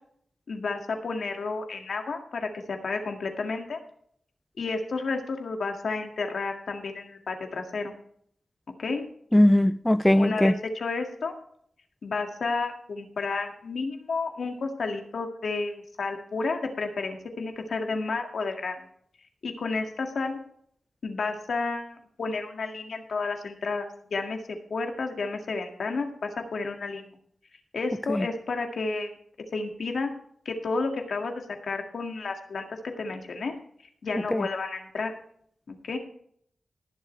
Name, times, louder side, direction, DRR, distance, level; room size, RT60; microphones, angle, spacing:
voice 1, 0.5-3.8 4.6-7.9 8.8-9.0 10.1-11.3 12.0-18.8 19.4-20.4 21.0-27.1 27.7-29.1 29.5-30.1 30.5-33.5 34.0-35.1 35.7-36.0, left 3 dB, 70° left, 2.0 m, -31 dB
voice 2, 9.3-10.5 28.1-28.3 34.3-34.4, left 1 dB, 10° left, 0.4 m, -20 dB
19.5 x 7.6 x 3.3 m
wide cardioid pair, 95°, 0 cm